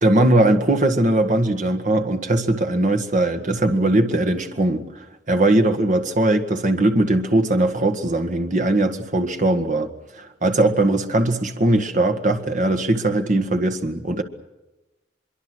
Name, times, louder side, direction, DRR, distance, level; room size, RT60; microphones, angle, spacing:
voice 1, 0.0-4.8 5.3-9.9 10.2-14.2, right 1 dB, 45° right, 7 dB, 1.8 m, -20 dB
24.0 x 23.5 x 6.3 m, 1.0 s
head